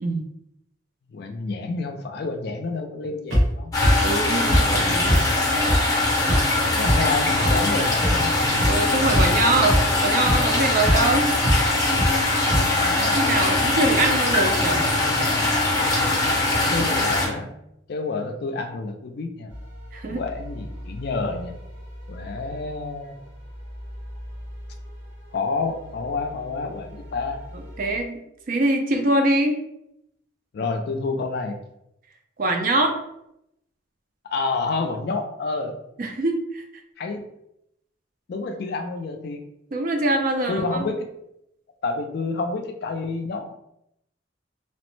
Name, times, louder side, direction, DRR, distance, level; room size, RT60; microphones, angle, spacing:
voice 1, 1.1-3.7 4.4-5.6 6.7-8.3 12.4-13.2 16.5-17.5 17.9-19.5 20.1-21.6 22.1-23.1 25.3-27.4 30.5-31.6 34.2-35.8 37.0-37.3 38.3-39.4 40.5-41.1 41.8-43.5, left 3 dB, 55° left, 5 dB, 0.3 m, -29 dB
sound 1, 3.3-3.4 3.8-3.9 4.5-4.6 5.1-5.2 5.7-5.8 6.3-6.4 6.8-6.9 7.4-7.5 8.0-8.1 8.6-8.7 9.1-9.4 9.7-9.8 10.2-10.4 10.8-10.9 11.4-11.5 12.0-12.1 12.5-12.6, equal, 90° right, 1.2 m, -20 dB
sound 2, 3.7-17.3, left 2 dB, 20° left, 0.6 m, -22 dB
voice 2, 4.0-5.2 8.6-11.3 13.0-14.8 16.8-16.9 19.9-20.2 27.8-28.2 28.5-29.6 32.4-33.0 36.0-36.6 39.7-40.9, right 2 dB, 45° right, 4 dB, 0.4 m, -23 dB
sound 3, 19.5-28.0, equal, 65° right, 1.1 m, -40 dB
2.9 x 2.0 x 3.1 m, 0.80 s
head